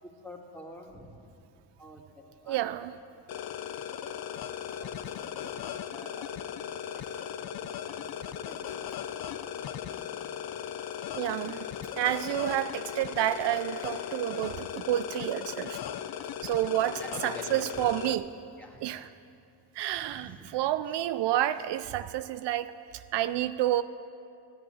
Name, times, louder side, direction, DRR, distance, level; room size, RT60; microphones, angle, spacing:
voice 1, 0.0-1.2 1.8-2.6 3.3-3.4 4.8-4.9 5.4-6.3 6.7-7.4 8.4-8.6 9.3-9.4 16.9-17.9 18.6-18.8 19.9-20.5, equal, 5° left, -1 dB, 2.6 m, -48 dB
voice 2, 2.5-2.9 11.1-11.6 12.0-15.8 16.4-18.3 18.8-19.1 19.7-23.8, right 13 dB, 75° right, 12 dB, 0.5 m, -29 dB
sound 1, 3.3-18.1, left 9 dB, 60° left, 0.7 m, -37 dB
13.5 x 8.1 x 8.7 m, 2.6 s
supercardioid pair, 60°, 43 cm